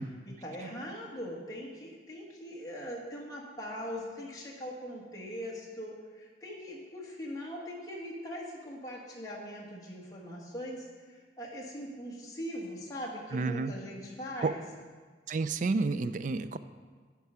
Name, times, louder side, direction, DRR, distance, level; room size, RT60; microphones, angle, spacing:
voice 1, 0.2-14.6, equal, 20° left, -4 dB, 1.5 m, -41 dB
voice 2, 13.3-13.7 14.4-14.5 15.3-16.6, right 3 dB, 45° right, 12 dB, 0.3 m, -30 dB
10.5 x 4.6 x 5.6 m, 1.5 s
head